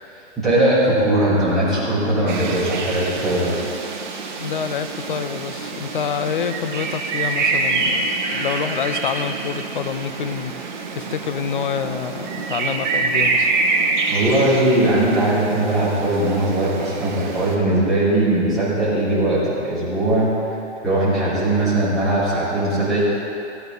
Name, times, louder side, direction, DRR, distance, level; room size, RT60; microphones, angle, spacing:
voice 1, 0.4-3.6 14.1-20.3 20.8-23.0, right 1 dB, ahead, -14 dB, 3.3 m, -19 dB
sound 1, 2.3-17.6, right 4 dB, 40° right, 1.4 m, -26 dB
voice 2, 4.4-13.5, left 7 dB, 45° left, 10 dB, 0.6 m, -27 dB
17.0 x 9.5 x 3.9 m, 2.9 s
hypercardioid pair, 175°, 35 cm